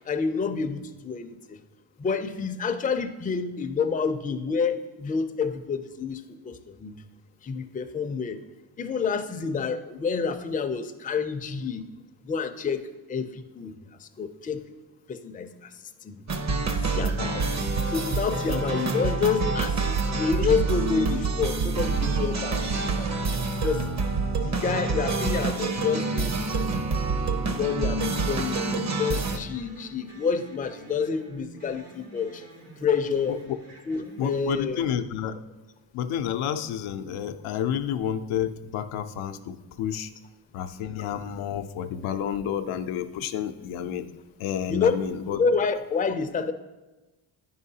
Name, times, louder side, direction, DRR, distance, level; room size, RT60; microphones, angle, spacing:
voice 1, 0.0-1.6 2.0-6.9 7.4-8.4 8.8-11.8 12.2-13.7 14.0-14.6 15.1-15.5 16.0-16.2 16.9-17.4 17.9-23.1 23.6-23.9 24.4-26.3 27.4-32.4 32.8-33.4 33.9-34.8 44.7-44.9 45.4-46.5, left 5 dB, 20° left, 7 dB, 0.4 m, -28 dB
sound 1, 16.3-29.4, right 4 dB, 35° right, 0.7 m, -27 dB
sound 2, 26.9-34.4, right 2 dB, 80° right, 1.4 m, -48 dB
voice 2, 34.2-35.4 35.9-40.1 40.5-44.1 44.4-45.4, left 9 dB, 85° left, 8 dB, 0.6 m, -30 dB
9.2 x 5.6 x 2.7 m, 1.1 s
cardioid pair, 70°, 48 cm